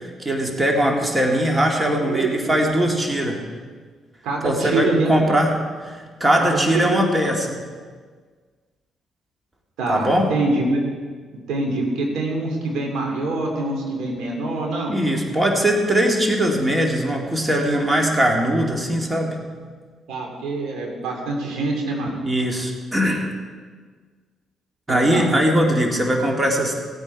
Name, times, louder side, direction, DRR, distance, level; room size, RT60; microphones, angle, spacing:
voice 1, 0.2-3.4 4.4-5.5 5.8-7.6 9.9-10.3 14.9-19.4 22.2-23.2 24.9-26.8, equal, 20° right, 1 dB, 2.2 m, -20 dB
voice 2, 4.2-5.2 6.4-7.0 9.8-10.8 11.5-15.0 20.1-22.2 24.9-25.3, right 2 dB, 85° right, 1 dB, 2.9 m, -25 dB
18.0 x 9.1 x 4.7 m, 1.5 s
cardioid pair, 90°, 0 cm